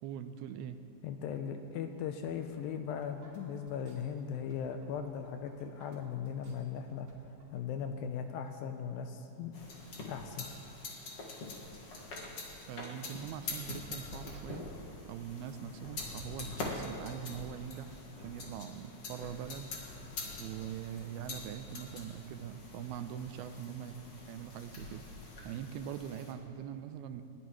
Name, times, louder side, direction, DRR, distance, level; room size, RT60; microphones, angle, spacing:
voice 1, 0.0-0.8 12.7-14.6 15.1-19.8 20.4-24.0 24.3-25.0 25.4-27.2, right 9 dB, 85° right, 9 dB, 2.6 m, -42 dB
voice 2, 1.0-7.1 7.5-9.5 10.1-10.5, left 7 dB, 80° left, 6 dB, 2.2 m, -38 dB
sound 1, 2.0-7.6, right 2 dB, 45° right, 3.9 m, -62 dB
sound 2, 9.5-26.3, left 3 dB, 45° left, 2.1 m, -45 dB
sound 3, 18.8-25.6, right 3 dB, 65° right, 3.5 m, -61 dB
21.0 x 17.0 x 3.1 m, 2.8 s
omnidirectional pair, 4.5 m